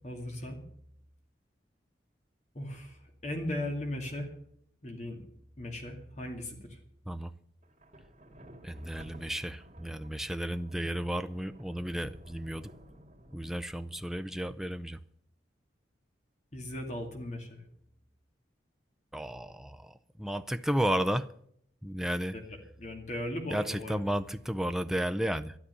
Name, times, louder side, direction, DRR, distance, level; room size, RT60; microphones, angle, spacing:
voice 1, 0.0-0.6 2.5-4.3 4.8-5.2 5.6-6.8 16.5-17.6 22.3-22.4 22.8-24.0, left 1 dB, 40° left, 2.3 m, -37 dB
Thunder, 7.6-14.9, equal, 35° right, 2.8 m, -54 dB
voice 2, 8.6-12.7 13.3-15.0 19.1-21.3 21.8-22.4 23.5-25.6, right 1 dB, ahead, 0.5 m, -33 dB
12.5 x 11.5 x 6.9 m
head